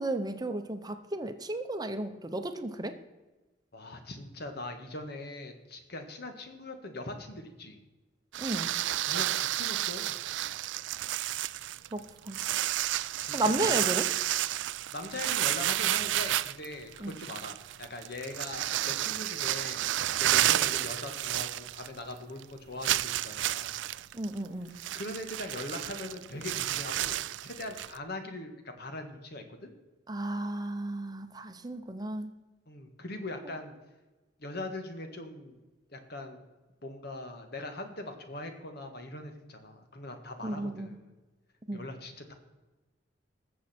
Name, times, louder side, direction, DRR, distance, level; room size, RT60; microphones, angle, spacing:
voice 1, 0.0-2.9 8.4-8.7 11.0-11.1 11.9-12.4 13.3-14.0 17.0-17.1 24.1-24.8 30.1-32.3 40.4-41.0 41.7-41.9, right 2 dB, 20° right, 8 dB, 0.8 m, -33 dB
voice 2, 3.7-7.8 9.1-10.1 13.2-13.9 14.9-19.9 20.2-23.7 24.6-29.7 32.7-33.8 34.4-35.6 35.9-36.4 36.8-41.1 41.7-42.3, left 2 dB, 60° left, 6 dB, 1.7 m, -41 dB
sound 1, 8.3-22.1 22.4-22.5 22.8-28.0, right 14 dB, 70° right, 0.3 m, -31 dB
20.0 x 7.5 x 4.4 m, 1.2 s
head